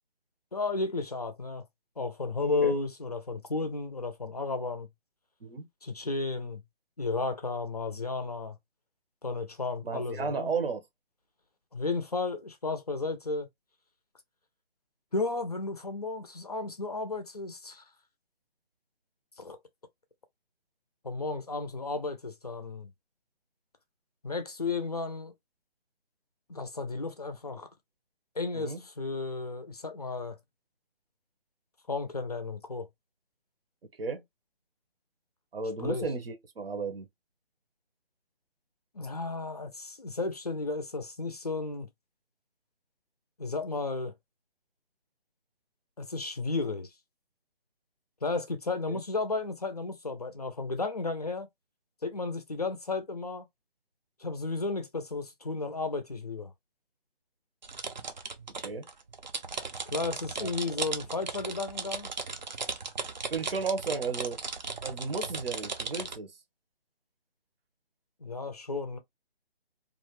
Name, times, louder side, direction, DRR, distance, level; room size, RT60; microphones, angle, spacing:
voice 1, 0.5-1.7 2.0-4.9 5.8-6.6 7.0-8.6 9.2-10.5 11.7-13.5 15.1-17.8 19.4-19.6 21.0-22.9 24.2-25.3 26.5-27.7 28.4-30.4 31.9-32.9 35.8-36.1 38.9-41.9 43.4-44.1 46.0-46.9 48.2-51.5 52.0-53.5 54.2-56.5 59.9-62.1 68.2-69.0, left 3 dB, 40° left, 0.4 m, -33 dB
voice 2, 9.8-10.8 28.5-28.8 34.0-34.2 35.5-37.1 48.9-49.0 58.6-58.9 60.4-60.5 63.3-64.4 64.8-66.3, right 4 dB, 70° right, 0.8 m, -33 dB
sound 1, 57.6-66.2, right 4 dB, 45° right, 0.5 m, -37 dB
2.4 x 2.1 x 2.9 m
hypercardioid pair, 170°, 30 cm